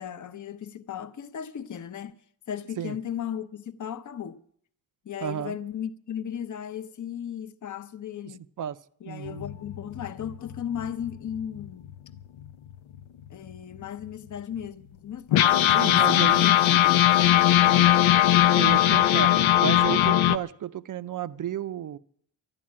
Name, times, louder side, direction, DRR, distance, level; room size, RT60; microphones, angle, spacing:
voice 1, 0.0-2.1 2.5-4.4 5.0-8.4 9.0-11.8 13.3-15.5 16.0-17.2 17.7-18.0, left 9 dB, 40° left, 0.9 m, -36 dB
voice 2, 5.2-5.6 8.6-8.8 9.1-9.5 15.7-16.4 17.6-17.9 18.6-19.3 19.6-22.0, right 10 dB, 45° right, 0.5 m, -32 dB
sound 1, 9.3-12.5 12.9-13.0 13.3-13.5 14.1-14.2 15.3-20.4, left 13 dB, 80° left, 0.7 m, -20 dB
12.0 x 11.5 x 8.6 m
cardioid pair, 130°, 47 cm